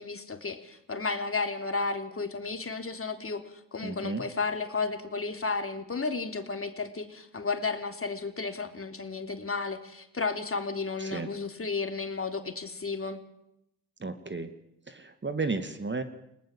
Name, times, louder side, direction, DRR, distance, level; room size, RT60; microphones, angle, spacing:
voice 1, 0.0-3.4 3.7-13.2, left 4 dB, 25° left, 6 dB, 3.4 m, -33 dB
voice 2, 3.8-4.2 11.0-11.3 14.0-14.5 14.9-16.0, right 3 dB, 20° right, 9 dB, 2.4 m, -33 dB
30.0 x 19.0 x 7.5 m, 0.80 s
figure-of-eight pair, 45°, 49 cm